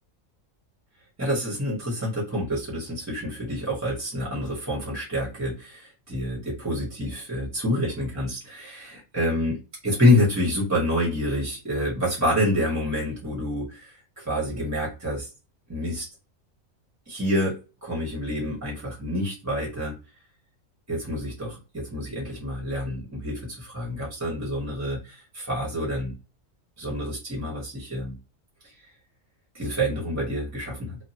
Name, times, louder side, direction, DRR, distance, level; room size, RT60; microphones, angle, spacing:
voice 1, 1.2-9.6 9.8-15.3 15.7-16.1 17.1-19.9 20.9-26.1 26.8-28.1 28.6-28.9 29.5-31.0, left 1 dB, 15° right, -4 dB, 1.0 m, -27 dB
2.9 x 2.4 x 2.7 m, 0.30 s
omnidirectional pair, 1.4 m